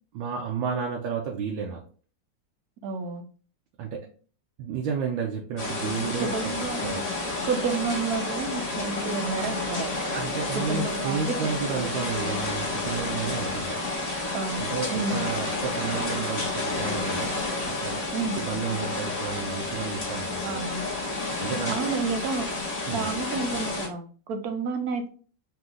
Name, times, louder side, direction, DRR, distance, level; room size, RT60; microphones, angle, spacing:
voice 1, 0.1-1.8 3.8-4.1 4.6-6.5 6.8-7.1 10.1-13.8 14.6-17.4 17.8-20.6 21.4-21.9 22.9-23.1, right 6 dB, 85° right, -1 dB, 1.4 m, -32 dB
voice 2, 2.8-3.2 6.2-6.9 7.4-10.0 10.6-11.9 14.3-15.3 18.1-18.4 20.4-20.8 21.7-22.5 22.9-25.1, right 4 dB, 65° right, 6 dB, 1.0 m, -30 dB
sound 1, 5.6-23.9, left 2 dB, 25° left, 0.9 m, -30 dB
4.3 x 2.7 x 3.8 m, 0.40 s
omnidirectional pair, 2.1 m